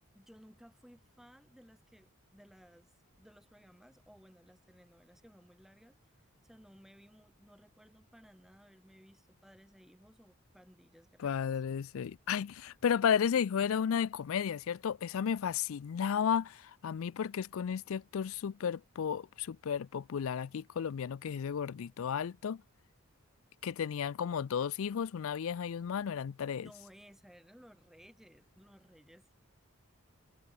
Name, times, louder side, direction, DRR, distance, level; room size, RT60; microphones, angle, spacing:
voice 1, 0.1-6.1 6.4-11.5 26.6-29.3, equal, ahead, 3.5 m, -59 dB
voice 2, 11.2-22.6 23.6-26.7, left 7 dB, 65° left, 0.4 m, -33 dB
head